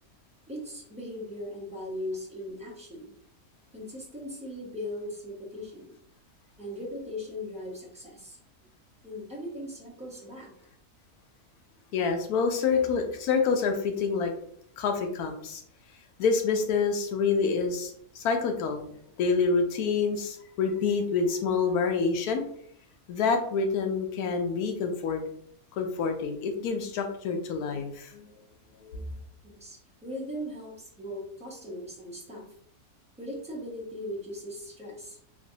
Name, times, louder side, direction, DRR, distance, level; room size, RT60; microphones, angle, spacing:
voice 1, 0.5-3.1 3.7-5.9 6.6-8.4 9.0-10.5 19.7-19.8 29.4-32.5 33.2-35.2, left 1 dB, 5° right, -5 dB, 0.6 m, -39 dB
voice 2, 11.9-14.3 14.8-15.6 16.2-18.8 19.2-22.4 23.1-25.2 25.8-28.3 28.8-29.1, left 5 dB, 85° left, 5 dB, 1.1 m, -27 dB
3.1 x 2.9 x 2.6 m, 0.66 s
omnidirectional pair, 1.6 m